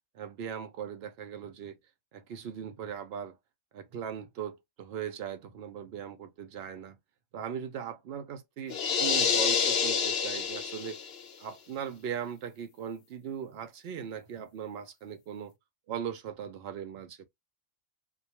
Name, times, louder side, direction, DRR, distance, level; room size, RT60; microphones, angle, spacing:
voice 1, 0.1-1.8 2.1-3.4 3.7-7.0 7.3-11.0 11.4-15.5 15.9-17.2, right 8 dB, 60° right, 0.7 m, -39 dB
sound 1, 8.7-11.2, left 6 dB, 60° left, 0.8 m, -27 dB
2.3 x 2.2 x 2.8 m
omnidirectional pair, 1.3 m